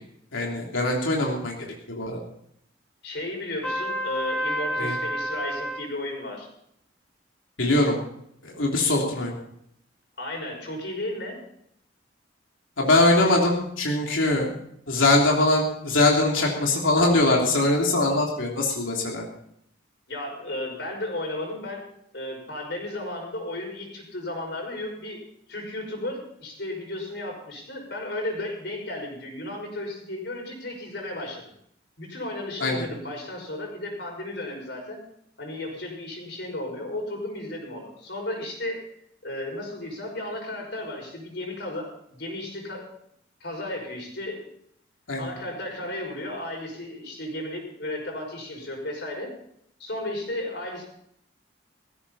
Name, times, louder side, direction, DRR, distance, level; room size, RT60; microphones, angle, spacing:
voice 1, 0.3-1.5 1.9-2.2 4.8-4.9 7.6-8.0 8.4-9.3 12.8-14.5 14.9-19.2 32.6-32.8 45.1-45.3, left 2 dB, 90° left, -1 dB, 3.2 m, -22 dB
voice 2, 3.0-6.5 10.2-11.4 20.1-21.8 22.1-25.2 25.5-31.4 32.0-35.0 35.4-38.8 39.2-42.9 43.4-44.4 45.2-49.3 49.8-50.8, left 1 dB, 60° left, 1 dB, 6.1 m, -34 dB
Trumpet, 3.6-5.9, equal, 5° left, 6.0 m, -29 dB
17.0 x 15.5 x 4.2 m, 0.72 s
head